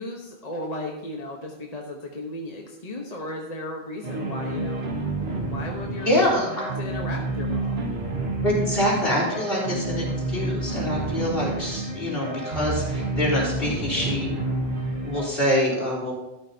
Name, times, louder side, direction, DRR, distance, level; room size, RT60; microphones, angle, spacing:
voice 1, 0.0-4.9 5.3-7.8, left 1 dB, 40° left, 0 dB, 1.2 m, -35 dB
sound 1, 4.0-15.3, right 2 dB, 85° right, 1.7 m, -29 dB
voice 2, 6.0-6.7 8.4-14.3 15.0-16.1, left 1 dB, 65° left, -5 dB, 3.9 m, -25 dB
12.5 x 12.0 x 2.8 m, 0.96 s
omnidirectional pair, 1.0 m